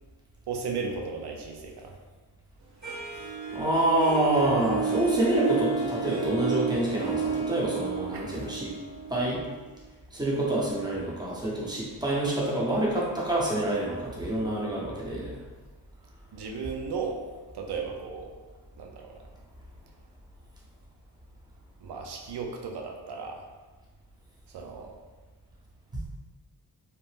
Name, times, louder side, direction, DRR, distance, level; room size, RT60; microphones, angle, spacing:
voice 1, 0.5-1.9 8.1-8.4 16.3-17.2 17.5-18.3 18.8-19.2 21.8-23.4 24.5-25.0, right 5 dB, 80° right, 2 dB, 0.6 m, -35 dB
Harp, 2.8-9.7, right 5 dB, 45° right, 1.2 m, -31 dB
voice 2, 3.5-8.7 9.1-9.4 10.1-15.4, right 1 dB, 10° right, -5 dB, 0.8 m, -27 dB
2.8 x 2.0 x 3.3 m, 1.3 s
wide cardioid pair, 90°, 39 cm